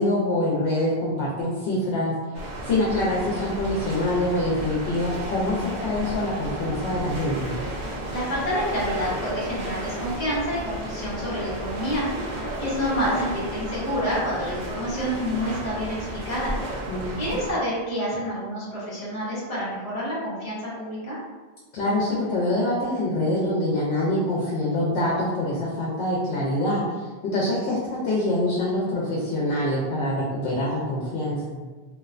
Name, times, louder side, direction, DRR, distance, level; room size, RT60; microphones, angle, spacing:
voice 1, 0.0-2.1 2.6-7.5 16.9-17.4 21.7-31.6, left 1 dB, 85° left, -5 dB, 0.9 m, -25 dB
sound 1, 2.3-17.5, right 1 dB, 55° right, 0.6 m, -33 dB
voice 2, 8.1-12.1 12.6-16.5 17.2-21.2, equal, 40° left, -7 dB, 0.8 m, -28 dB
2.5 x 2.1 x 2.4 m, 1.3 s
omnidirectional pair, 1.1 m